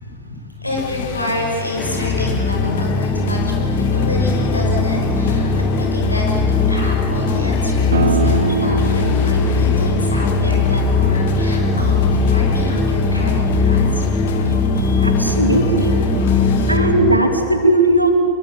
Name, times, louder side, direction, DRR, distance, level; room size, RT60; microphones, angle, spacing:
voice 1, 0.0-14.0 14.7-14.8, left 2 dB, 85° left, -1 dB, 6.2 m, -28 dB
sound 1, 0.8-16.8, left 8 dB, 55° left, 2.1 m, -30 dB
sound 2, 1.8-17.2, left 3 dB, 15° left, 3.3 m, -18 dB
sound 3, 7.9-13.3, right 5 dB, 65° right, 1.2 m, -26 dB
voice 2, 14.8-16.0 16.7-18.1, right 1 dB, 85° right, 5 dB, 2.8 m, -17 dB
25.5 x 23.0 x 7.6 m, 2.7 s
figure-of-eight pair, 90°, 0 cm